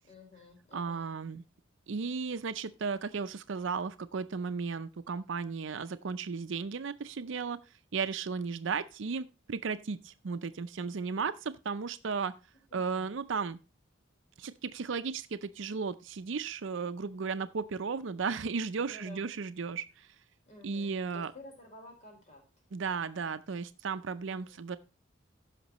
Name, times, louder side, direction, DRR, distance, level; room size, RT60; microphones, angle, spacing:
voice 1, 0.0-1.2 12.7-13.1 18.9-19.2 20.5-22.4 24.2-24.7, left 1 dB, 35° left, 0 dB, 4.3 m, -52 dB
voice 2, 0.7-1.4 1.9-7.6 7.9-12.3 12.7-13.6 14.4-20.1 20.6-21.3 22.7-24.8, right 5 dB, 70° right, 11 dB, 0.5 m, -35 dB
15.0 x 5.9 x 3.0 m, 0.29 s
head